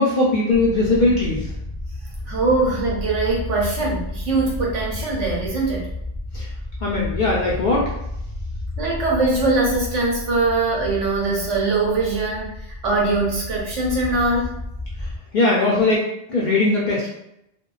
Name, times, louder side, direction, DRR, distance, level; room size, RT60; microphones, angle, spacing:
voice 1, 0.0-1.5 6.3-6.5 6.8-7.9 15.3-16.0 16.3-17.1, left 2 dB, 55° left, -4 dB, 0.5 m, -19 dB
sound 1, 0.5-15.2, left 2 dB, 25° right, 0.6 m, -32 dB
voice 2, 2.3-5.9 8.8-14.6, right 3 dB, 90° right, -4 dB, 1.1 m, -22 dB
2.6 x 2.1 x 2.3 m, 0.79 s
omnidirectional pair, 1.2 m